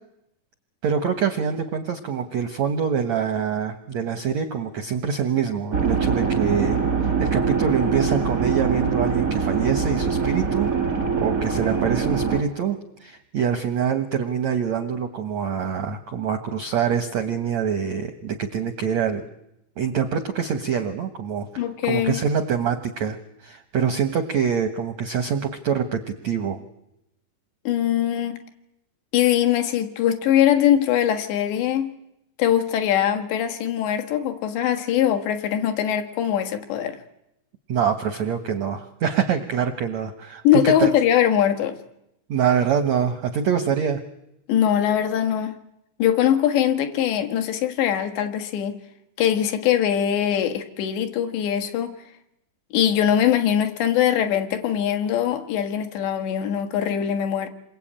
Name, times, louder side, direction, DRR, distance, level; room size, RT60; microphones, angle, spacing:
voice 1, 0.8-10.7 11.2-19.2 19.8-21.5 21.9-23.2 23.4-26.6 37.7-40.9 42.3-44.0, right 7 dB, 75° right, 1.6 m, -25 dB
sound 1, 5.7-12.4, right 5 dB, 45° right, 1.0 m, -23 dB
voice 2, 21.6-22.2 27.7-28.4 29.1-31.9 32.4-37.0 40.4-41.8 44.5-45.6 46.0-48.7 49.2-52.0 52.7-57.5, left 10 dB, 75° left, 3.8 m, -22 dB
28.0 x 23.0 x 8.9 m
omnidirectional pair, 5.2 m